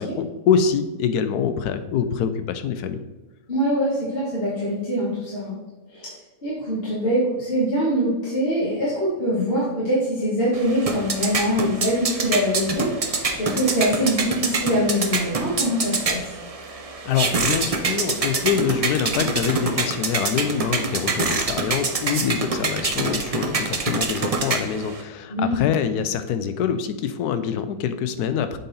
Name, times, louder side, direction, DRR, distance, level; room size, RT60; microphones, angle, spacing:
voice 1, 0.0-3.0 17.0-28.6, left 7 dB, 90° left, 10 dB, 1.2 m, -25 dB
voice 2, 3.5-5.6 5.9-6.2 6.4-16.3 25.3-25.7, equal, 40° left, -7 dB, 1.8 m, -23 dB
sound 1, 10.5-25.0, right 4 dB, 50° right, 0.4 m, -26 dB
7.6 x 4.1 x 4.1 m, 1.2 s
omnidirectional pair, 1.6 m